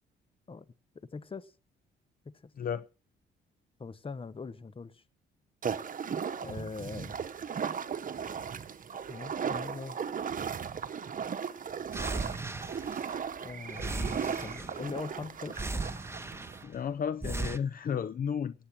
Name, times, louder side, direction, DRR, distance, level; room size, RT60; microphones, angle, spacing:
voice 1, 0.9-1.5 2.2-2.5 3.8-5.0 6.4-7.2 9.1-10.0 13.4-15.6, left 4 dB, 25° left, 1.1 m, -41 dB
sound 1, 5.6-16.6, right 7 dB, 45° right, 1.3 m, -37 dB
sound 2, 11.9-13.4 13.7-15.0 15.5-16.8 17.2-17.6, right 2 dB, 15° right, 1.5 m, -37 dB
voice 2, 16.6-18.5, left 7 dB, 45° left, 0.7 m, -33 dB
18.5 x 9.2 x 6.3 m
cardioid pair, 90°, 20 cm